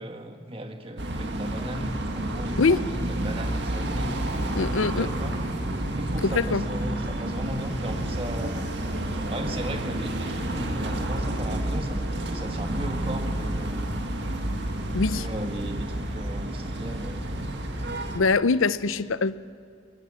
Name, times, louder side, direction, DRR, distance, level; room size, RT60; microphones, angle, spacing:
voice 1, 0.0-5.3 5.9-8.7 9.3-14.0 15.1-17.4, right 1 dB, 25° right, 5 dB, 1.7 m, -36 dB
sound 1, 1.0-18.2, right 1 dB, 55° right, 2.2 m, -30 dB
voice 2, 4.5-5.1 6.2-6.6 14.9-15.3 18.1-19.5, left 4 dB, 85° left, 16 dB, 0.7 m, -23 dB
23.0 x 21.0 x 7.6 m, 2.4 s
head